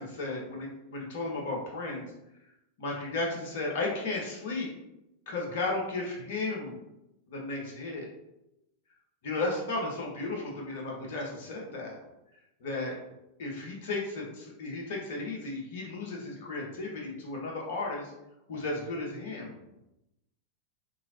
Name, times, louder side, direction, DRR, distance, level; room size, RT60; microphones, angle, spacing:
voice 1, 0.0-2.1 2.8-4.7 5.3-6.8 7.3-8.1 9.2-12.0 12.6-12.9 13.4-18.1 18.5-19.6, left 2 dB, 55° left, -1 dB, 0.9 m, -34 dB
3.0 x 2.9 x 2.8 m, 0.89 s
figure-of-eight pair, 90°, 0 cm